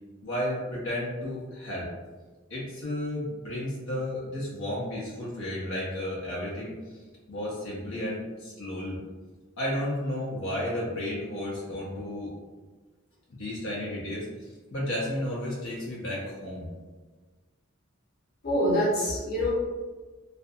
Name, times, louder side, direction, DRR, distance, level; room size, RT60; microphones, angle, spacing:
voice 1, 0.2-1.9 2.5-6.7 7.3-9.0 9.6-12.3 13.3-16.7, left 1 dB, 85° left, -5 dB, 0.7 m, -33 dB
voice 2, 18.4-19.5, equal, 50° left, -6 dB, 0.9 m, -25 dB
2.6 x 2.5 x 2.4 m, 1.3 s
head